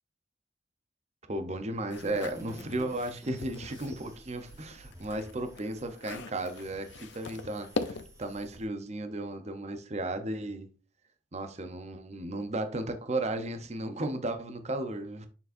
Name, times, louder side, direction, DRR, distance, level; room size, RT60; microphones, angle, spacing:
voice 1, 1.3-10.7 11.3-15.3, right 1 dB, 40° right, 0.8 m, -35 dB
sound 1, 1.8-4.1 4.5-8.3, left 3 dB, 90° left, 0.6 m, -41 dB
sound 2, 1.9-8.6, right 1 dB, 15° right, 1.5 m, -51 dB
6.9 x 6.7 x 2.6 m
head